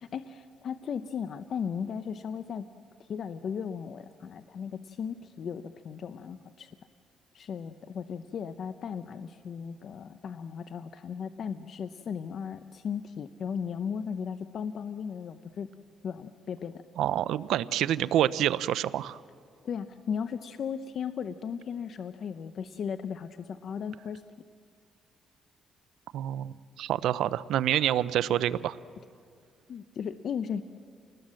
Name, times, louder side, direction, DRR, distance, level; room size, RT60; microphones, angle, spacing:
voice 1, 0.0-2.7 3.0-6.7 7.3-15.7 16.0-16.8 19.6-24.2 29.7-30.6, left 7 dB, 60° left, 11 dB, 0.7 m, -36 dB
voice 2, 17.0-19.2 26.1-28.8, right 11 dB, 80° right, 16 dB, 0.6 m, -27 dB
28.5 x 20.0 x 7.7 m, 2.2 s
cardioid pair, 90°, 0 cm